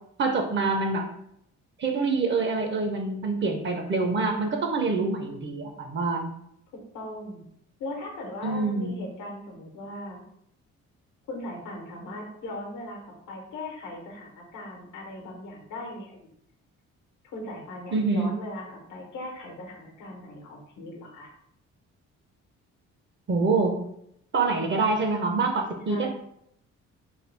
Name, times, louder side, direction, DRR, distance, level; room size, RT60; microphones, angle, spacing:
voice 1, 0.2-1.1 1.8-6.3 8.4-8.9 17.9-18.3 23.3-23.8 24.3-26.1, right 3 dB, 40° right, 3 dB, 0.6 m, -26 dB
voice 2, 6.9-7.4 7.8-10.2 11.3-13.0 13.3-16.3 17.2-21.3 25.9-26.1, left 1 dB, 80° left, 1 dB, 1.0 m, -39 dB
3.2 x 2.2 x 3.2 m, 0.73 s
cardioid pair, 90°, 30 cm